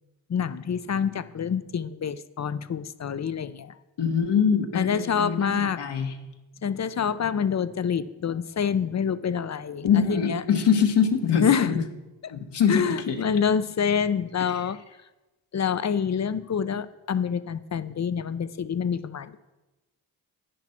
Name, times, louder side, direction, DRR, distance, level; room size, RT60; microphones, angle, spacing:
voice 1, 0.3-3.7 4.7-5.8 6.6-10.4 11.4-11.8 12.2-12.3 12.7-14.8 15.5-19.4, left 7 dB, 40° left, 15 dB, 0.7 m, -27 dB
voice 2, 4.0-6.1 9.8-11.7 12.3-13.2 14.5-14.6, left 7 dB, 65° left, 3 dB, 1.4 m, -24 dB
10.0 x 10.0 x 4.4 m, 1.1 s
supercardioid pair, 45°, 44 cm